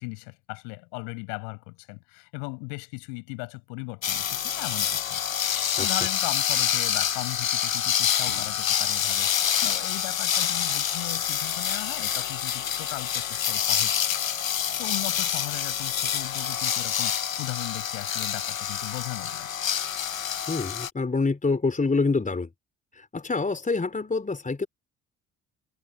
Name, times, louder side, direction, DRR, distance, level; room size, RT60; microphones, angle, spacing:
voice 1, 0.0-5.2 5.8-14.3 14.8-19.5, left 40 dB or more, 70° left, 7.0 m, -37 dB
sound 1, 4.0-20.9, left 9 dB, 90° left, 0.5 m, -27 dB
voice 2, 20.5-22.5 23.0-24.7, left 3 dB, 20° left, 4.2 m, -26 dB
figure-of-eight pair, 50°, 39 cm